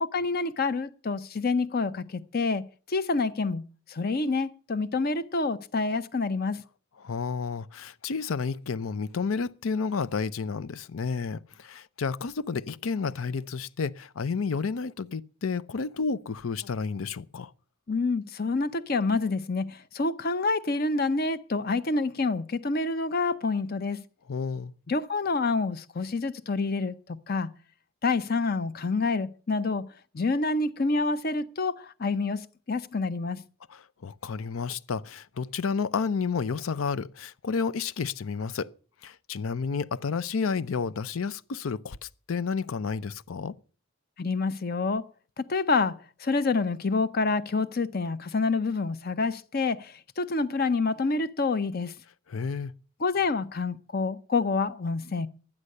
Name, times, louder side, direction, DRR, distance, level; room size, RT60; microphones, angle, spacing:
voice 1, 0.0-6.6 17.9-24.0 24.9-27.5 28.0-29.9 30.1-33.4 44.2-45.0 45.4-51.9 53.0-55.3, left 3 dB, 50° left, 0.6 m, -27 dB
voice 2, 7.0-17.5 24.3-24.7 33.7-38.7 39.0-43.5 52.3-52.7, left 5 dB, 85° left, 0.5 m, -31 dB
12.0 x 9.8 x 6.5 m
head